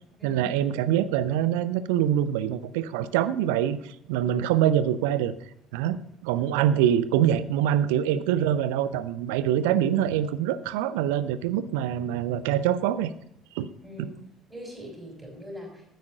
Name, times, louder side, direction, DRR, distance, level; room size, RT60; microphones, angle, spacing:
voice 1, 0.2-5.3 5.7-6.0 6.2-13.1 13.5-13.7 14.0-14.1, right 10 dB, 65° right, 15 dB, 0.5 m, -24 dB
voice 2, 13.8-14.2 14.5-15.9, equal, 15° right, 1 dB, 5.7 m, -42 dB
9.4 x 9.1 x 6.5 m, 0.72 s
figure-of-eight pair, 55°, 0 cm